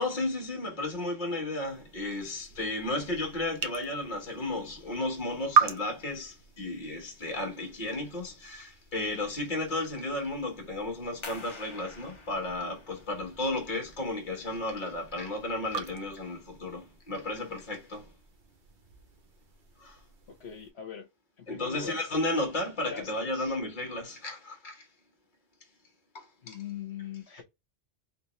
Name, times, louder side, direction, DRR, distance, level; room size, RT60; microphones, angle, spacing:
voice 1, 0.0-18.1 19.8-20.0 21.5-24.8 26.1-26.6, left 2 dB, 45° left, 1.3 m, -33 dB
sound 1, 1.7-20.7, right 7 dB, 65° right, 0.8 m, -38 dB
sound 2, 11.2-16.6, left 2 dB, 30° left, 0.8 m, -50 dB
voice 2, 20.3-21.1 21.4-22.0 22.9-23.5 26.4-27.4, left 8 dB, 75° left, 1.1 m, -41 dB
3.3 x 3.1 x 3.0 m
omnidirectional pair, 1.1 m